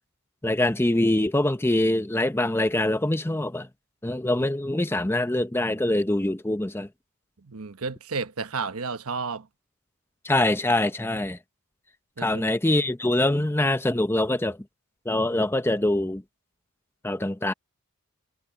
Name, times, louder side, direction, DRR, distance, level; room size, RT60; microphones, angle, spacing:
voice 1, 0.4-3.7 4.0-6.9 10.2-11.4 12.2-14.6 15.1-16.2 17.0-17.5, left 1 dB, 10° left, 0.6 m, -24 dB
voice 2, 7.4-9.5 12.2-12.3, right 4 dB, 75° right, 1.1 m, -32 dB
head